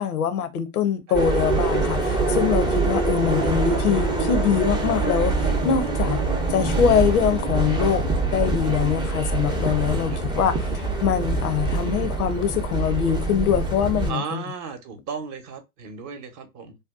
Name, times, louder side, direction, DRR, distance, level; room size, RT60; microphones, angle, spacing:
voice 1, 0.0-6.2 6.5-10.6 11.0-14.4, left 8 dB, 85° left, 0.6 m, -23 dB
sound 1, 1.1-14.1, right 3 dB, 10° right, 0.5 m, -24 dB
voice 2, 14.1-16.8, right 6 dB, 40° right, 0.8 m, -35 dB
2.6 x 2.1 x 2.3 m
hypercardioid pair, 90°, 44 cm